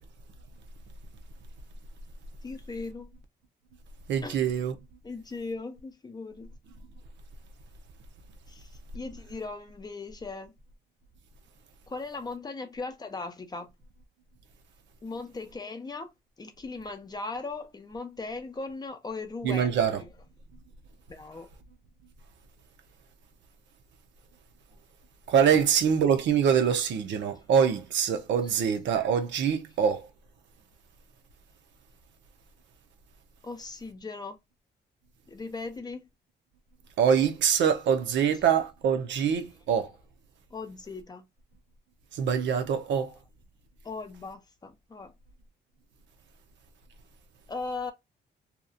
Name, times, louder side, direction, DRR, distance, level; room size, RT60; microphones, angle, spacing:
voice 1, 2.4-3.1 4.2-4.3 5.0-6.5 8.5-10.5 11.9-13.7 15.0-16.1 16.4-20.2 21.1-21.5 25.5-25.6 26.4-26.6 28.4-28.6 33.4-34.4 35.3-36.1 38.3-38.5 40.5-41.3 43.8-45.1 47.5-47.9, left 3 dB, 20° left, 0.5 m, -38 dB
voice 2, 4.1-4.7 19.4-20.0 25.3-30.1 37.0-39.9 42.1-43.1, right 7 dB, 80° right, 0.7 m, -24 dB
2.9 x 2.4 x 2.4 m
cardioid pair, 140°, 18 cm